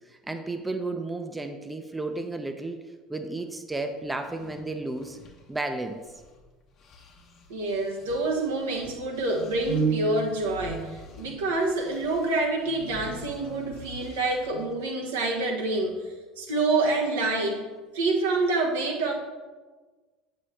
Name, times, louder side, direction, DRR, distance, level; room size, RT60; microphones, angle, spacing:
voice 1, 0.1-2.8 3.1-5.2 5.5-6.0, right 2 dB, 15° right, 7 dB, 0.6 m, -33 dB
sound 1, 4.1-6.5 6.8-14.7, left 2 dB, 50° left, 1.1 m, -47 dB
voice 2, 7.5-16.0 16.4-17.6 17.9-19.1, right 3 dB, 80° right, 1 dB, 1.1 m, -27 dB
7.7 x 5.6 x 3.3 m, 1.3 s
hypercardioid pair, 75°, 0 cm